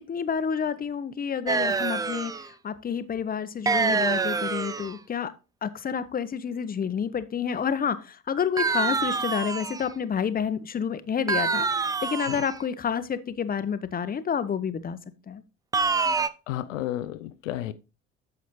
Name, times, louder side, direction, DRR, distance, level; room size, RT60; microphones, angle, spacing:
voice 1, 0.0-5.3 5.6-15.0 15.3-15.4, left 7 dB, 25° left, 0.8 m, -29 dB
sound 1, 1.5-2.5 3.7-5.0 8.6-9.9 11.3-12.6 15.7-16.3, right 4 dB, 10° right, 0.3 m, -26 dB
voice 2, 16.5-17.7, left 13 dB, 75° left, 0.5 m, -32 dB
9.5 x 7.0 x 3.1 m
figure-of-eight pair, 55°, 38 cm